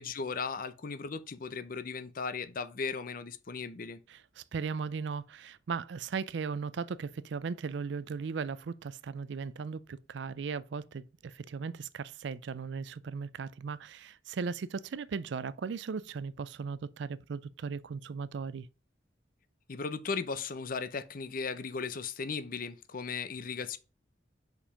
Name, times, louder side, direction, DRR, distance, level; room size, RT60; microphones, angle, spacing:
voice 1, 0.0-4.0 19.7-23.8, left 5 dB, 45° left, 0.6 m, -37 dB
voice 2, 4.1-18.7, right 5 dB, 65° right, 0.4 m, -37 dB
5.3 x 4.9 x 4.9 m
head